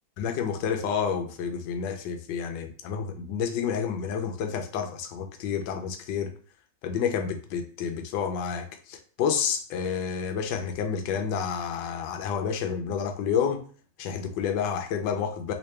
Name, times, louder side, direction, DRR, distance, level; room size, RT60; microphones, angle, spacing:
voice 1, 0.2-6.3 6.8-13.6 14.0-15.5, left 7 dB, 80° left, 1.3 m, -29 dB
3.3 x 3.0 x 3.2 m
omnidirectional pair, 1.9 m